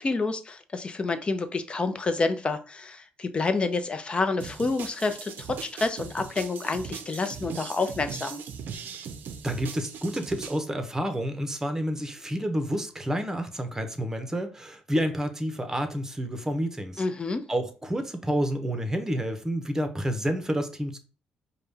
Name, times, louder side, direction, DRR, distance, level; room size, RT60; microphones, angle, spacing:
voice 1, 0.0-8.4 17.0-17.4, left 3 dB, 30° left, 0.7 m, -28 dB
sound 1, 4.4-10.6, right 7 dB, 70° right, 0.6 m, -39 dB
voice 2, 9.4-17.0 17.5-21.0, equal, 15° right, 0.9 m, -29 dB
4.9 x 2.3 x 3.4 m
cardioid pair, 75°, 3 cm